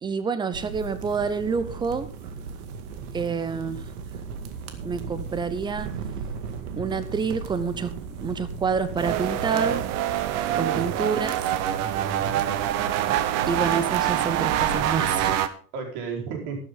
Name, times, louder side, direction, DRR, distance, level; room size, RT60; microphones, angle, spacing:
voice 1, 0.0-2.1 3.1-3.9 4.8-5.9 6.8-9.8 10.6-11.4 13.5-15.4, right 5 dB, 10° right, 13 dB, 0.6 m, -28 dB
sound 1, 0.5-15.4, right 5 dB, 75° right, 2.2 m, -37 dB
sound 2, 9.0-15.5, right 11 dB, 35° right, 0.9 m, -25 dB
voice 2, 10.5-11.0 11.8-12.6 15.7-16.6, right 5 dB, 50° right, 1 dB, 4.6 m, -34 dB
13.0 x 11.5 x 3.8 m, 0.40 s
supercardioid pair, 150°, 45 cm